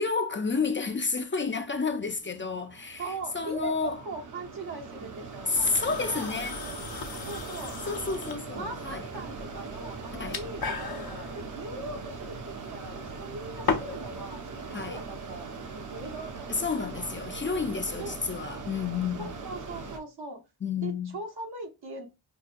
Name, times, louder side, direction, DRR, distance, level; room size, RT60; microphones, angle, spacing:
voice 1, 0.0-4.0 5.5-6.6 7.9-9.0 10.1-10.4 14.7-15.0 16.5-19.3 20.6-21.2, left 4 dB, 30° left, 0.4 m, -30 dB
Mechanisms, 2.0-20.0, right 4 dB, 50° right, 0.7 m, -41 dB
voice 2, 3.0-6.4 7.3-8.2 8.5-17.2 18.0-18.3 19.2-20.4 20.8-22.1, right 2 dB, 75° right, 1.1 m, -41 dB
sound 1, 5.5-14.1, left 5 dB, 65° left, 0.7 m, -37 dB
5.7 x 2.2 x 2.5 m
wide cardioid pair, 85°, 39 cm